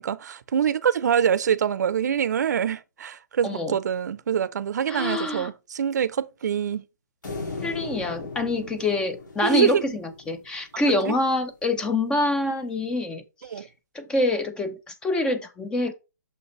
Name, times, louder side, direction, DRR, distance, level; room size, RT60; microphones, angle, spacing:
voice 1, 0.0-6.8 9.4-9.8 11.1-11.2 13.5-13.7, right 8 dB, 70° right, 0.6 m, -25 dB
voice 2, 3.4-3.8 4.9-5.5 7.6-13.2 13.6-13.7 13.9-15.9, left 2 dB, 10° left, 0.5 m, -26 dB
sound 1, 7.2-10.6, left 3 dB, 85° left, 2.3 m, -37 dB
6.5 x 5.4 x 3.1 m
hypercardioid pair, 155°, 10 cm